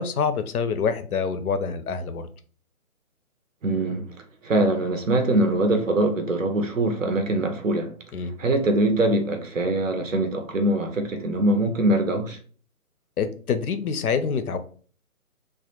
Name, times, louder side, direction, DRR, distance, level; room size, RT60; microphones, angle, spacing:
voice 1, 0.0-2.3 8.1-8.3 13.2-14.6, left 6 dB, 80° left, 0.6 m, -26 dB
voice 2, 3.6-7.9 8.4-12.4, right 1 dB, 60° right, 0.6 m, -23 dB
2.1 x 2.1 x 2.8 m
hypercardioid pair, 180°, 43 cm